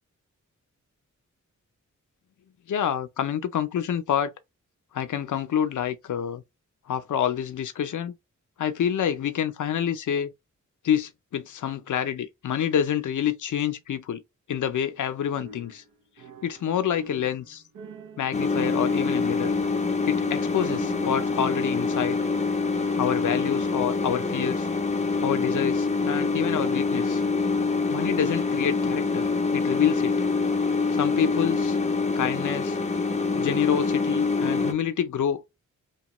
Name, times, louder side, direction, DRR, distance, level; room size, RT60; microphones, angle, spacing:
voice 1, 2.7-4.3 4.9-6.4 6.9-8.2 8.6-10.3 10.8-14.2 14.5-15.8 16.4-17.6 18.2-19.5 20.1-22.2 23.0-24.7 25.2-27.2 27.9-29.2 29.5-30.2 30.9-31.8 32.2-32.8 33.3-35.5, left 9 dB, 75° left, 0.5 m, -27 dB
sound 1, 15.3-16.7 16.9-22.2, right 3 dB, 85° right, 0.7 m, -43 dB
sound 2, 18.3-34.7, left 4 dB, 25° left, 0.5 m, -25 dB
2.9 x 2.2 x 2.9 m
wide cardioid pair, 170°, 31 cm